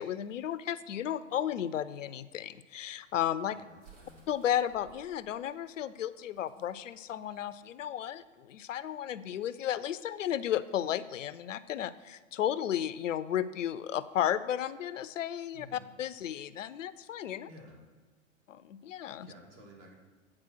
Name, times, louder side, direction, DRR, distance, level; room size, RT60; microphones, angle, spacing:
voice 1, 0.0-3.6 4.3-17.5 18.5-19.3, left 10 dB, 75° left, 15 dB, 0.5 m, -34 dB
sound 1, 2.8-8.4, right 5 dB, 70° right, 2.3 m, -61 dB
voice 2, 3.5-4.3 15.5-15.8 17.4-17.8 19.2-19.9, equal, 40° right, 0 dB, 2.1 m, -53 dB
8.6 x 4.3 x 6.1 m, 1.4 s
figure-of-eight pair, 110°, 38 cm